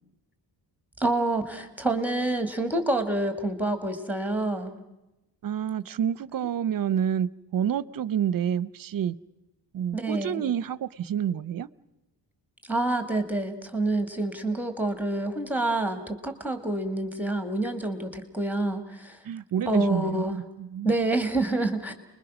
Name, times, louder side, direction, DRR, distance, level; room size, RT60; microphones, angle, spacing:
voice 1, 1.0-4.7 9.9-10.4 12.7-19.2 19.7-20.4 20.8-21.9, right 2 dB, 5° right, 2.1 m, -27 dB
voice 2, 5.4-9.2 9.7-11.7 19.2-21.0, right 9 dB, 50° right, 0.7 m, -28 dB
30.0 x 21.5 x 6.2 m
cardioid pair, 110°, 43 cm